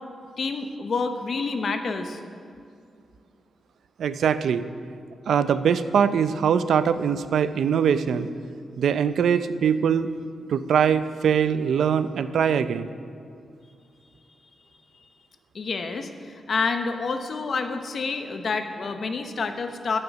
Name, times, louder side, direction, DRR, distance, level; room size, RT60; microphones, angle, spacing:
voice 1, 0.4-2.2 15.5-20.0, left 4 dB, 50° left, 7 dB, 0.8 m, -28 dB
voice 2, 4.0-4.7 5.3-8.3 8.8-10.1 10.5-12.9, right 7 dB, 80° right, 12 dB, 0.4 m, -22 dB
14.0 x 6.6 x 6.0 m, 2.3 s
wide cardioid pair, 140°, 0 cm